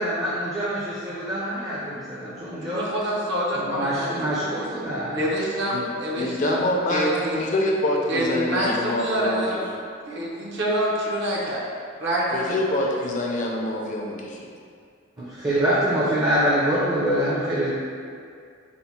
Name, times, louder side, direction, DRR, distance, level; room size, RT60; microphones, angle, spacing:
voice 1, 0.0-2.9 3.5-5.2 15.2-17.7, right 1 dB, 20° right, -9 dB, 0.5 m, -25 dB
voice 2, 2.6-4.6 5.1-6.6 6.9-7.4 8.1-9.6 10.1-11.6 12.0-12.5, right 1 dB, 55° right, -4 dB, 0.7 m, -26 dB
voice 3, 6.2-9.4 9.8-9.9 12.3-14.5, left 1 dB, 40° left, -1 dB, 0.4 m, -25 dB
4.4 x 2.1 x 4.1 m, 2.3 s
head